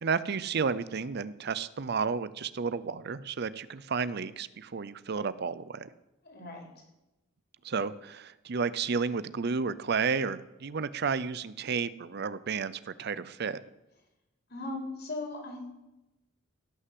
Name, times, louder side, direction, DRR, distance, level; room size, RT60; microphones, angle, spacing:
voice 1, 0.0-5.9 7.6-13.6, right 5 dB, 55° right, 16 dB, 0.6 m, -32 dB
voice 2, 6.2-6.7 14.5-15.7, left 2 dB, 55° left, 1 dB, 4.3 m, -38 dB
17.0 x 6.6 x 7.7 m, 0.96 s
head